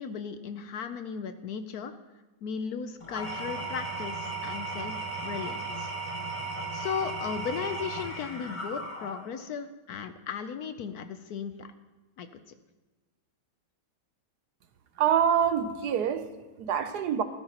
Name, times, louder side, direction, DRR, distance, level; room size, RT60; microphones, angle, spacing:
voice 1, 0.0-1.9 2.4-5.0 5.2-5.9 6.7-11.7 12.2-12.4, left 6 dB, 70° left, 9 dB, 0.9 m, -36 dB
Engine / Tools, 3.0-9.4, right 3 dB, 20° left, 1.1 m, -36 dB
voice 2, 15.0-17.2, right 8 dB, 65° right, 9 dB, 1.1 m, -26 dB
16.0 x 13.5 x 2.9 m, 1.1 s
omnidirectional pair, 2.1 m